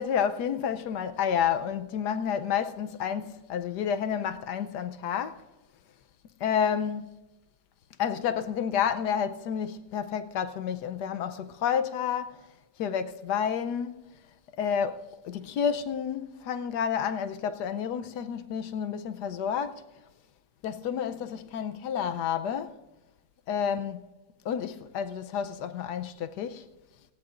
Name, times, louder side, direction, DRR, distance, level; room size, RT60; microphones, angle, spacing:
voice 1, 0.0-5.4 6.4-7.1 8.0-12.4 12.8-14.0 14.6-19.8 20.6-22.8 23.5-24.0 24.4-26.7, left 8 dB, 70° left, 1.2 m, -30 dB
18.0 x 16.5 x 2.5 m
omnidirectional pair, 2.0 m